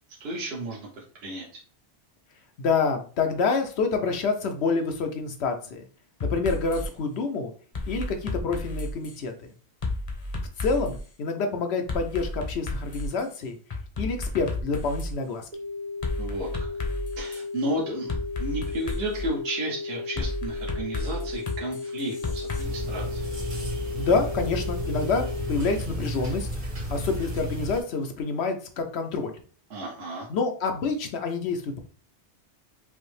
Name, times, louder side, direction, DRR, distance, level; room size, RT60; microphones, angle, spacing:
voice 1, 0.2-1.6 16.2-16.7 17.2-23.2 29.7-30.3, right 1 dB, 70° right, -2 dB, 1.1 m, -33 dB
voice 2, 2.6-5.8 6.2-7.5 7.9-9.3 10.6-13.6 14.0-15.5 24.0-26.5 26.9-29.3 30.3-31.8, left 4 dB, 85° left, 6 dB, 1.0 m, -27 dB
sound 1, 6.2-6.9 7.7-9.2 9.8-11.0 11.9-13.2 13.7-15.1 16.0-17.4 18.1-19.3 20.2-22.6, left 2 dB, 40° left, 0.7 m, -32 dB
sound 2, 15.5-25.5, left 4 dB, 50° right, 0.5 m, -35 dB
sound 3, 22.6-27.8, equal, 90° right, 2.0 m, -32 dB
5.2 x 2.0 x 3.2 m, 0.41 s
omnidirectional pair, 1.1 m